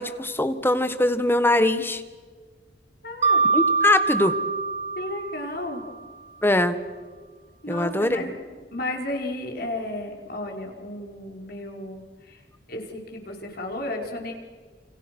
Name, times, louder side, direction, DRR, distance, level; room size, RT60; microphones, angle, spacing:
voice 1, 0.0-2.0 3.5-4.4 6.4-6.8 7.7-8.2, left 1 dB, 15° left, 11 dB, 1.5 m, -22 dB
voice 2, 3.0-3.4 4.9-5.8 7.6-8.4 8.7-12.4 12.7-14.3, left 1 dB, 60° left, 1 dB, 5.2 m, -33 dB
Mallet percussion, 3.2-6.0, right 4 dB, 40° right, 0.9 m, -24 dB
30.0 x 29.0 x 6.3 m, 1.5 s
head